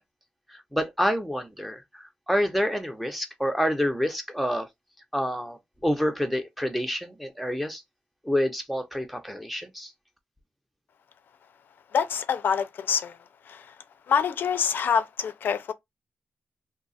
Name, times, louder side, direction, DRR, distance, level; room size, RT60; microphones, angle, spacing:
voice 1, 0.5-4.7 5.1-7.8 8.2-9.9, equal, ahead, 0.7 m, -28 dB
voice 2, 11.9-13.1 13.5-13.6 14.1-15.7, left 7 dB, 80° left, 0.5 m, -25 dB
2.8 x 2.3 x 4.0 m
wide cardioid pair, 115°, 3 cm